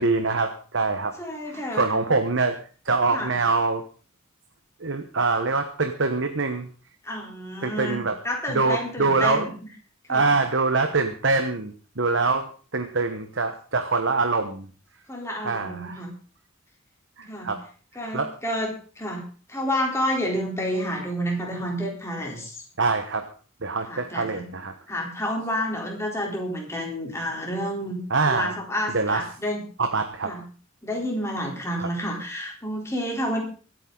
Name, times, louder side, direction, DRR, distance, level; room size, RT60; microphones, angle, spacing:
voice 1, 0.0-1.1 1.5-2.6 2.8-3.8 4.8-6.7 7.1-7.2 7.6-8.2 8.5-9.5 10.1-14.7 15.4-16.0 17.2-17.6 18.1-18.3 22.8-23.3 23.6-24.7 28.1-28.5 28.9-29.2 29.8-30.4, right 3 dB, 60° right, 6 dB, 1.2 m, -24 dB
voice 2, 1.2-1.9 3.1-3.4 7.0-9.5 10.1-10.3 15.1-16.1 17.3-17.5 18.0-22.6 23.9-24.4 24.9-28.0 28.3-29.6 30.2-30.4 30.8-33.4, equal, 15° left, 0 dB, 3.8 m, -29 dB
24.5 x 9.2 x 4.0 m, 0.39 s
head